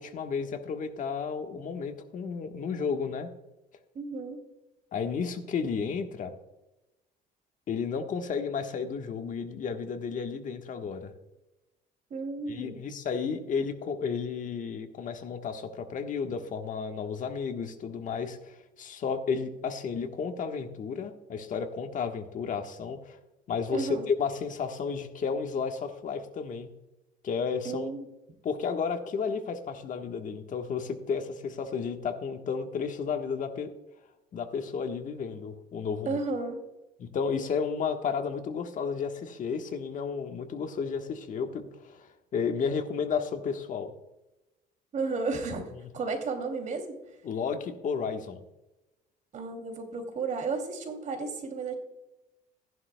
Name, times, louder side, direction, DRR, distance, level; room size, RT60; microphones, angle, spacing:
voice 1, 0.0-3.3 4.9-6.3 7.7-11.1 12.5-23.2 23.5-26.7 27.2-27.9 28.4-33.7 34.3-36.2 37.0-43.9 47.2-48.4, left 5 dB, 50° left, 5 dB, 1.3 m, -32 dB
voice 2, 3.9-4.4 12.1-12.8 23.7-24.1 27.6-28.1 36.1-36.6 44.9-47.0 49.3-51.7, right 4 dB, 50° right, 5 dB, 2.7 m, -33 dB
15.0 x 11.0 x 2.2 m, 0.97 s
cardioid pair, 110°, 17 cm